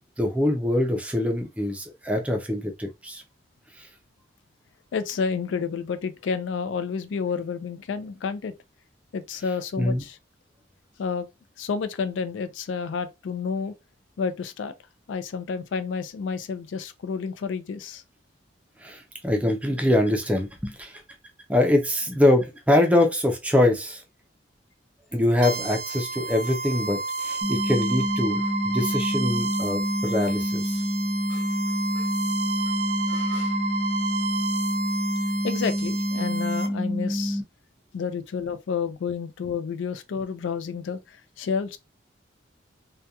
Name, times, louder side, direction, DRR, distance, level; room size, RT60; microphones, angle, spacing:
voice 1, 0.0-3.2 3.8-3.9 9.8-10.0 18.8-21.0 21.5-24.0 25.1-30.8, left 1 dB, 5° right, 0.4 m, -24 dB
voice 2, 4.9-8.5 9.1-10.2 11.0-11.3 11.6-13.7 14.2-14.7 15.1-18.0 31.3-31.5 31.9-32.1 33.1-33.5 35.4-37.4 37.9-41.8, left 5 dB, 80° left, 0.4 m, -30 dB
sound 1, 25.4-36.7, right 3 dB, 75° right, 0.7 m, -31 dB
sound 2, 27.4-37.4, equal, 25° left, 1.1 m, -27 dB
2.3 x 2.2 x 2.8 m
head